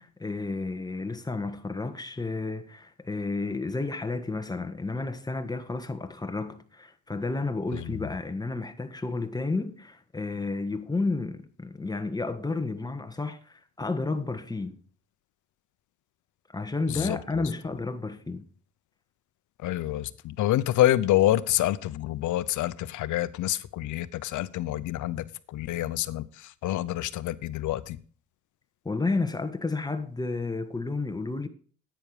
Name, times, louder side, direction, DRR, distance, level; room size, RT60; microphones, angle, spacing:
voice 1, 0.0-14.8 16.5-18.5 28.8-31.5, left 3 dB, 15° left, 1.5 m, -31 dB
voice 2, 7.7-8.1 16.9-17.2 19.6-28.0, left 14 dB, 80° left, 0.8 m, -27 dB
10.5 x 8.9 x 4.9 m
cardioid pair, 90°, 30 cm